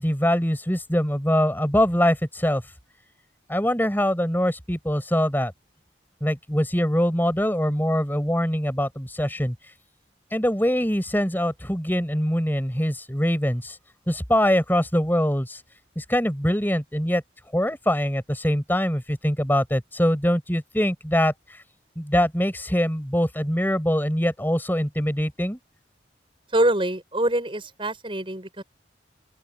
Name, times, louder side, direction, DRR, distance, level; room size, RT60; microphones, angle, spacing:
voice 1, 0.0-2.6 3.5-5.5 6.2-9.5 10.3-13.8 14.1-15.6 16.0-17.2 17.5-21.3 22.0-25.6, equal, 10° left, 6.2 m, -23 dB
voice 2, 26.5-28.6, right 1 dB, 30° right, 7.4 m, -24 dB
open air
head